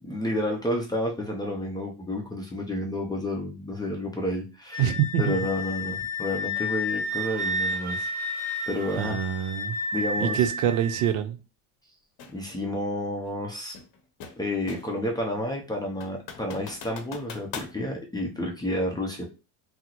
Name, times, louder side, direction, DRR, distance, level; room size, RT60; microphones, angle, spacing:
voice 1, 0.0-4.9 5.2-8.1 8.7-9.2 9.9-10.5 12.3-13.7 14.4-19.2, left 1 dB, 10° left, 0 dB, 0.5 m, -30 dB
Wind instrument woodwind instrument, 4.7-11.1, left 1 dB, 20° right, 1.0 m, -31 dB
voice 2, 4.8-5.4 9.0-9.8 10.2-11.4, right 10 dB, 65° right, 9 dB, 0.6 m, -25 dB
sound 1, 12.2-12.4 13.7-15.1 15.4-15.5 16.0-17.8, left 5 dB, 45° left, 0.8 m, -41 dB
3.5 x 2.0 x 2.9 m, 0.30 s
supercardioid pair, 110°, 44 cm